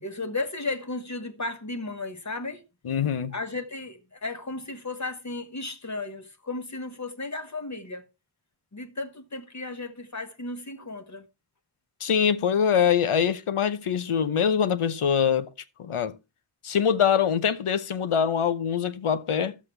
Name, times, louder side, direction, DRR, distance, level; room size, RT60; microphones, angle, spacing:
voice 1, 0.0-2.6 3.3-8.1 8.7-11.3, left 2 dB, 35° left, 1.3 m, -34 dB
voice 2, 2.8-3.3 12.0-15.5 15.8-16.1 16.6-19.6, left 7 dB, 80° left, 0.9 m, -24 dB
12.0 x 7.6 x 3.3 m
wide cardioid pair, 85°, 49 cm